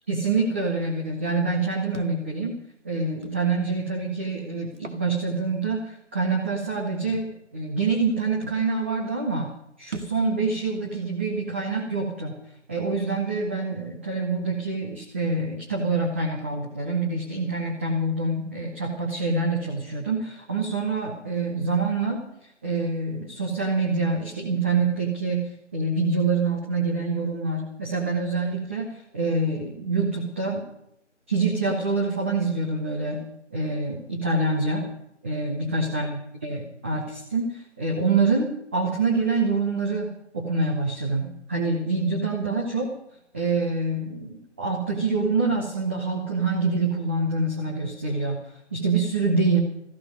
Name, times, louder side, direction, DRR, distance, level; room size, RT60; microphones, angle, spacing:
voice 1, 0.1-2.6 2.8-9.5 9.8-12.4 12.7-22.2 22.6-30.6 31.3-33.2 33.5-34.9 35.2-42.9 43.3-48.4 48.7-49.6, right 3 dB, 10° right, -1 dB, 0.9 m, -26 dB
Thump thud, 1.9-2.2 3.2-3.4 4.7-5.1 5.5-5.6 7.1-7.3 8.1-8.2 8.4-8.7 9.9-10.2, right 2 dB, 75° right, 2.2 m, -39 dB
16.5 x 15.5 x 5.2 m, 0.79 s
figure-of-eight pair, 155°, 36 cm